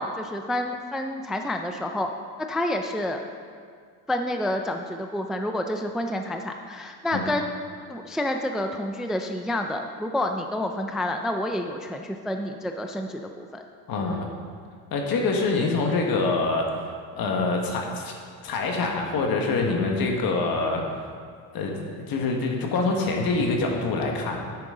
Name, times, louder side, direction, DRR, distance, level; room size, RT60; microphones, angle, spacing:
voice 1, 0.0-2.1 2.5-3.2 4.1-7.5 7.9-13.6, left 1 dB, ahead, 4 dB, 0.4 m, -29 dB
voice 2, 13.9-14.3 14.9-16.7 17.2-18.1 18.4-20.8 21.5-24.4, left 3 dB, 60° left, 1 dB, 1.7 m, -25 dB
9.9 x 9.0 x 3.8 m, 2.1 s
cardioid pair, 115°, 40 cm